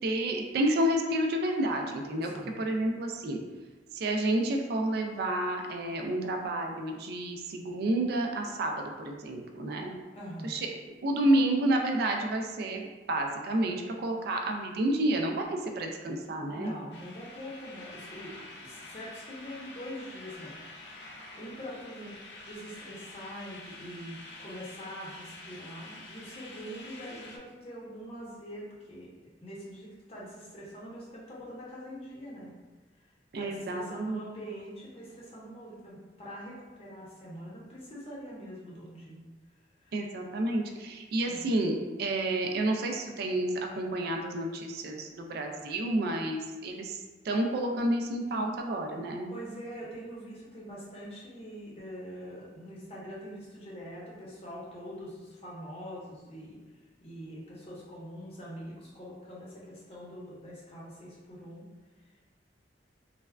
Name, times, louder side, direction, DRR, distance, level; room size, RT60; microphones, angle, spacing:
voice 1, 0.0-3.4 3.9-9.9 10.4-10.7 11.0-16.7 33.3-34.2 39.9-49.3, right 1 dB, 60° right, 3 dB, 0.3 m, -30 dB
voice 2, 10.1-10.6 16.5-20.6 21.3-22.2 22.4-32.6 33.4-39.3 39.8-39.9 41.2-41.5 48.3-48.5 49.3-56.6 57.0-61.6, equal, 35° left, -5 dB, 0.7 m, -44 dB
sound 1, 16.9-27.4, left 2 dB, 70° left, 0.4 m, -47 dB
3.3 x 2.1 x 2.3 m, 1.3 s
head